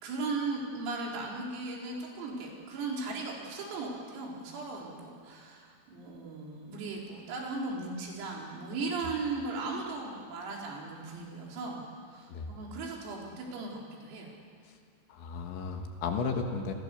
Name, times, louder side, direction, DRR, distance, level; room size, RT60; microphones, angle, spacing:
voice 1, 0.0-11.8 12.1-14.3, right 3 dB, 80° right, -2 dB, 6.3 m, -37 dB
voice 2, 15.1-16.7, left 5 dB, 70° left, 4 dB, 3.5 m, -34 dB
28.5 x 19.5 x 6.8 m, 2.1 s
omnidirectional pair, 6.0 m